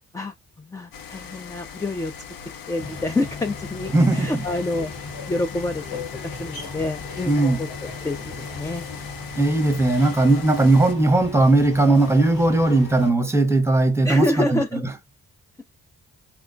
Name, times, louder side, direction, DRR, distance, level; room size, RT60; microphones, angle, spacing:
voice 1, 0.1-2.1 2.7-4.9 5.3-6.0 6.4-8.8 14.0-14.8, left 2 dB, 10° left, 0.3 m, -27 dB
sound 1, 0.9-10.9, left 7 dB, 65° left, 0.6 m, -40 dB
sound 2, 2.8-13.1, left 3 dB, 85° left, 1.1 m, -36 dB
voice 2, 3.9-4.4 7.3-7.6 9.4-14.9, right 2 dB, 5° right, 0.8 m, -18 dB
3.0 x 2.2 x 2.5 m
cardioid pair, 60°, 36 cm